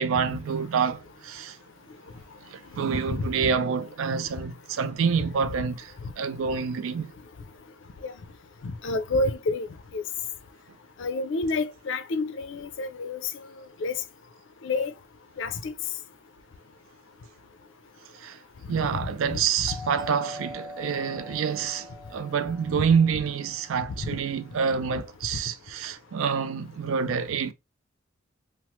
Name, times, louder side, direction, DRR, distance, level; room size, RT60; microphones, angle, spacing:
voice 1, 0.0-1.6 2.5-7.1 18.2-18.4 18.7-27.5, right 6 dB, 75° right, 0.4 m, -27 dB
voice 2, 8.6-10.0 11.0-13.5 13.8-14.0 14.6-14.9 15.4-15.7 18.9-19.7 22.7-22.8 24.0-24.2, left 3 dB, 60° left, 0.4 m, -29 dB
Doorbell, 19.7-24.3, left 1 dB, 20° right, 0.6 m, -43 dB
3.0 x 2.0 x 2.9 m
head